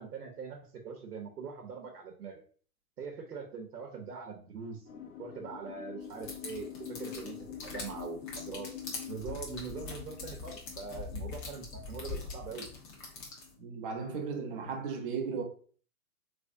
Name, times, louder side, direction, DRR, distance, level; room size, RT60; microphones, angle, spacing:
voice 1, 0.0-2.4 3.0-4.9 5.2-7.4 7.6-8.7 9.1-12.7, right 5 dB, 90° right, 1.0 m, -42 dB
sound 1, 4.9-14.2, left 9 dB, 65° left, 0.9 m, -47 dB
sound 2, 6.1-13.5, left 4 dB, 35° left, 1.0 m, -43 dB
voice 2, 13.6-15.4, right 5 dB, 35° right, 0.8 m, -36 dB
3.4 x 3.1 x 2.6 m
hypercardioid pair, 145°, 45 cm